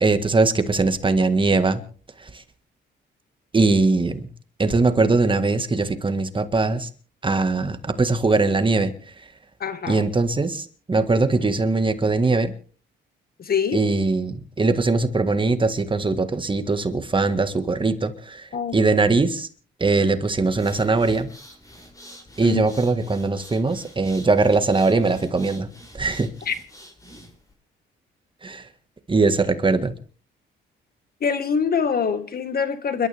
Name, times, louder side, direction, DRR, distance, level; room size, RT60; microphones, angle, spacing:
voice 1, 0.0-1.8 2.2-2.4 3.5-4.3 4.6-6.9 7.2-8.9 9.9-12.5 13.7-19.5 19.8-21.3 22.4-25.7 25.9-26.3 28.4-28.7 29.1-29.9, right 3 dB, 25° right, 1.7 m, -21 dB
voice 2, 9.6-10.1 13.4-13.8 18.5-18.8 22.4-22.6 26.5-26.6 31.2-33.1, left 6 dB, 50° left, 1.8 m, -24 dB
sound 1, 20.4-27.5, equal, 15° left, 7.2 m, -46 dB
29.5 x 12.5 x 3.5 m
cardioid pair, 90°, 20 cm